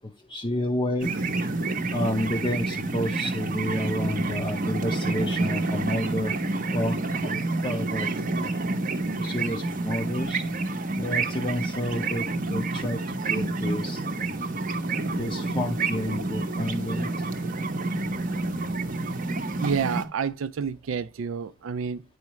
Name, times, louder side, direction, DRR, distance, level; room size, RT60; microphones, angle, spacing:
voice 1, 0.3-1.1 1.9-6.3 6.7-7.0 7.2-8.1 8.4-8.5 9.2-10.4 11.0-13.0 13.3-14.0 15.2-17.1, left 1 dB, 20° left, 0.6 m, -30 dB
sound 1, 1.0-20.0, right 3 dB, 40° right, 0.8 m, -28 dB
voice 2, 19.6-22.0, right 6 dB, 65° right, 0.4 m, -29 dB
9.4 x 4.8 x 3.0 m
head